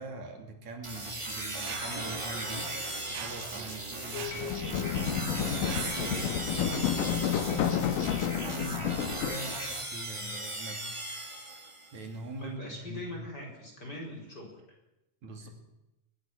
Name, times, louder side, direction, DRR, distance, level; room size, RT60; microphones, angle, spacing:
voice 1, 0.0-10.8 11.9-13.1 15.2-15.5, right 2 dB, 60° right, 4 dB, 4.1 m, -42 dB
sound 1, 0.8-12.0, right 1 dB, 15° right, 1.2 m, -38 dB
Mechanisms, 1.6-6.6, right 9 dB, 90° right, 3.1 m, -45 dB
sound 2, 4.1-9.4, left 9 dB, 80° left, 2.8 m, -30 dB
voice 2, 12.4-14.6, left 1 dB, 30° left, 0 dB, 5.4 m, -42 dB
22.5 x 21.0 x 6.2 m, 0.91 s
omnidirectional pair, 3.8 m